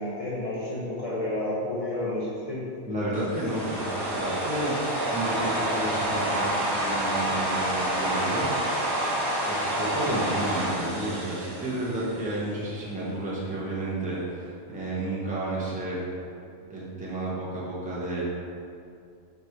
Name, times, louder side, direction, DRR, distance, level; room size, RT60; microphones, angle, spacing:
voice 1, 0.0-2.7, left 1 dB, 30° left, -7 dB, 0.8 m, -30 dB
voice 2, 2.9-8.7 9.5-16.0 16.7-18.2, right 1 dB, 5° right, -7 dB, 1.1 m, -31 dB
sound 1, 3.1-12.3, right 1 dB, 40° right, 1.7 m, -28 dB
5.4 x 5.0 x 4.7 m, 2.4 s
omnidirectional pair, 1.5 m